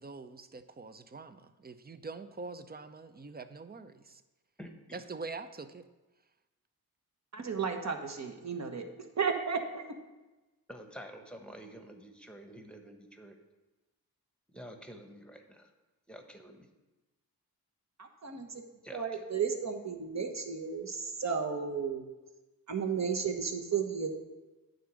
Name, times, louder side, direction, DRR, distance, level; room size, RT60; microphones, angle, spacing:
voice 1, 0.0-4.2 4.9-5.9, right 3 dB, 25° right, 11 dB, 0.6 m, -44 dB
voice 2, 4.6-5.0 10.7-13.4 14.5-15.7 16.1-16.7 18.8-19.3, equal, 5° left, 5 dB, 1.2 m, -49 dB
voice 3, 7.3-8.9 9.2-10.0 18.2-18.6 18.9-22.1 22.7-24.1, right 6 dB, 45° right, 5 dB, 1.2 m, -33 dB
9.2 x 3.8 x 6.2 m, 1.1 s
cardioid pair, 45°, 39 cm